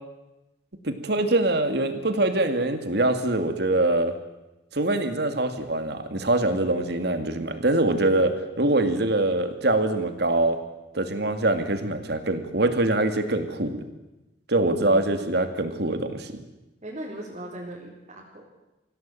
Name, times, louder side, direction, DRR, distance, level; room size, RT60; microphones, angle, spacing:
voice 1, 0.8-4.1 4.7-10.6 10.9-13.8 14.5-16.3, right 2 dB, 65° right, 8 dB, 2.6 m, -24 dB
voice 2, 14.7-15.2 16.8-18.4, right 1 dB, 40° right, -3 dB, 4.2 m, -38 dB
25.5 x 17.0 x 9.2 m, 1.0 s
head